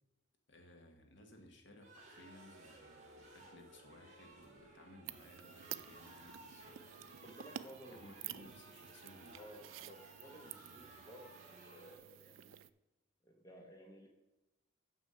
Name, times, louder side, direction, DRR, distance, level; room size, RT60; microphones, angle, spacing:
voice 1, 0.5-7.2 7.9-9.4 10.6-10.8, left 1 dB, 65° left, 4 dB, 1.4 m, -60 dB
sound 1, 1.8-12.0, right 2 dB, 35° right, 1.9 m, -58 dB
sound 2, 5.1-12.7, right 11 dB, 75° right, 0.4 m, -51 dB
voice 2, 7.2-8.5 9.3-12.6 13.2-14.1, equal, 20° left, 2 dB, 1.0 m, -56 dB
7.0 x 6.3 x 5.6 m, 1.0 s
head